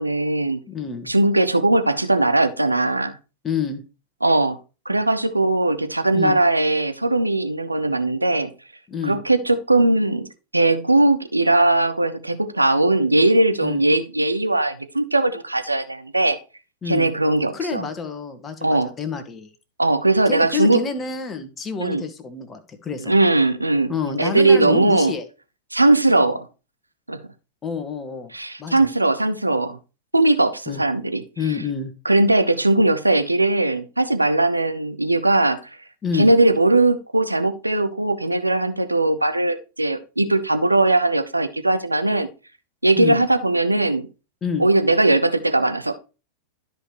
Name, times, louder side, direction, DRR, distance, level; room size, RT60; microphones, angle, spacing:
voice 1, 0.0-0.6 1.1-3.2 4.2-4.6 4.9-8.5 9.0-10.3 10.5-16.4 16.9-17.9 18.6-18.9 19.8-20.8 21.8-22.0 23.0-25.1 25.7-26.5 27.1-27.2 28.3-29.8 30.1-31.2 32.0-35.6 36.1-42.3 42.8-44.1 44.6-45.9, right 2 dB, 85° right, 10 dB, 0.7 m, -19 dB
voice 2, 0.7-1.1 3.4-3.8 6.1-6.4 8.9-9.2 13.6-13.8 16.8-17.1 17.5-19.5 20.3-23.1 23.9-25.2 27.6-28.3 28.6-28.9 30.7-30.8 31.4-31.9 36.0-36.3 43.0-43.2 44.4-44.7, left 6 dB, 20° left, 9 dB, 1.3 m, -28 dB
12.5 x 5.0 x 3.0 m, 0.31 s
figure-of-eight pair, 90°, 0 cm